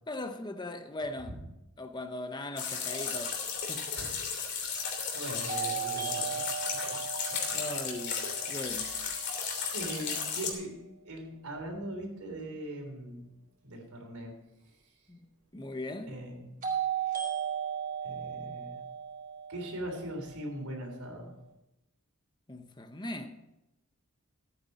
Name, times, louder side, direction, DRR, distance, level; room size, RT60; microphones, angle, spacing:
voice 1, 0.1-1.4 1.8-3.9 7.5-9.0 15.1-15.3 15.5-16.2 22.5-23.3, left 1 dB, 20° left, 0.8 m, -39 dB
sound 1, 2.6-10.5, left 6 dB, 50° left, 3.1 m, -34 dB
sound 2, 3.5-3.6 5.5-9.4 16.6-20.6, right 8 dB, 35° right, 4.5 m, -36 dB
voice 2, 4.0-4.5 5.1-6.2 8.6-9.1 9.7-10.7 11.0-13.3 13.6-14.4 16.0-16.5 18.0-18.8 19.5-21.3, right 1 dB, 90° right, 3.6 m, -40 dB
15.0 x 9.2 x 4.2 m
head